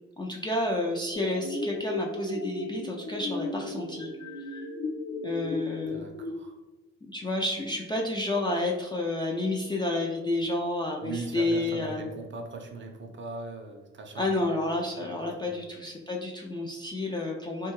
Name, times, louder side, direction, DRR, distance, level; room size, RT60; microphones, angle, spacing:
voice 1, 0.2-4.1 5.2-6.0 7.0-12.0 14.2-17.7, left 2 dB, 15° left, -2 dB, 0.3 m, -30 dB
sound 1, 1.1-6.3, left 2 dB, 55° left, 0.6 m, -35 dB
voice 2, 5.9-6.6 11.0-14.7 15.0-15.2 15.5-15.7, right 3 dB, 40° right, 3 dB, 0.5 m, -40 dB
2.6 x 2.2 x 3.0 m, 1.2 s
cardioid pair, 90°, 30 cm